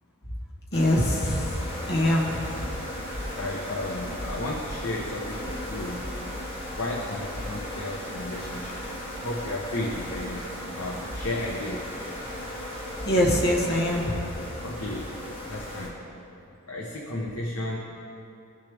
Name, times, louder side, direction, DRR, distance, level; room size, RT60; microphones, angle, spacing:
voice 1, 0.7-1.5 1.9-2.4 13.0-14.1, left 1 dB, 45° left, -2 dB, 1.4 m, -23 dB
sound 1, 0.7-15.9, left 1 dB, 25° left, 1.7 m, -36 dB
voice 2, 2.0-2.4 3.3-6.2 6.8-8.8 9.2-10.5 10.7-11.9 14.6-15.1 15.4-16.1 16.7-17.8, left 1 dB, 85° left, -2 dB, 1.0 m, -33 dB
17.0 x 6.6 x 3.5 m, 2.7 s
head